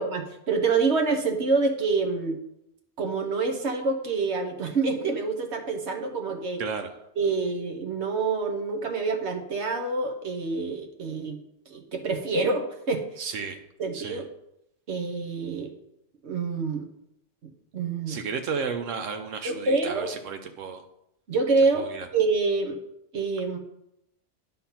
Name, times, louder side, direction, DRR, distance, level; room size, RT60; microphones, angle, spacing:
voice 1, 0.0-2.4 3.0-6.6 7.2-11.4 11.7-13.0 13.8-14.3 14.9-15.7 16.2-16.9 17.7-18.2 19.4-20.1 21.3-21.9 22.1-22.8 23.1-23.6, right 4 dB, 65° right, 4 dB, 1.3 m, -26 dB
voice 2, 6.6-6.9 13.2-13.6 13.9-14.2 18.1-20.8 21.7-22.1, right 5 dB, 80° right, 6 dB, 1.1 m, -33 dB
10.0 x 3.8 x 5.7 m, 0.81 s
omnidirectional pair, 1.3 m